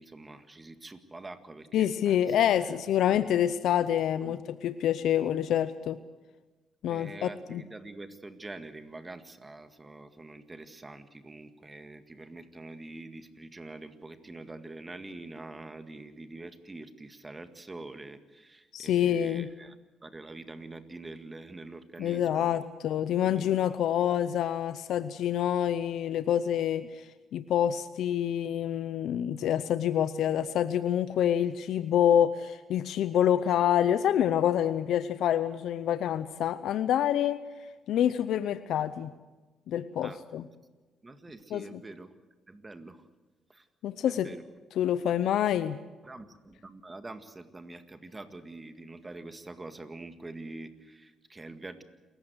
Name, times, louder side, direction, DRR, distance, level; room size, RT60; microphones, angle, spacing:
voice 1, 0.0-2.4 2.7-2.8 4.2-4.4 6.9-19.8 20.0-22.6 23.4-23.5 40.0-40.5 41.0-42.1 42.5-43.1 43.5-43.7 44.1-44.4 46.0-51.8, right 2 dB, 20° right, 9 dB, 1.9 m, -45 dB
voice 2, 1.7-6.0 6.8-7.6 18.7-19.5 22.0-26.8 27.3-37.4 37.9-39.1 39.7-40.4 41.5-41.6 43.8-44.3 44.8-45.8, left 10 dB, 75° left, 13 dB, 0.7 m, -27 dB
27.5 x 15.0 x 8.0 m, 1.2 s
cardioid pair, 90°, 0 cm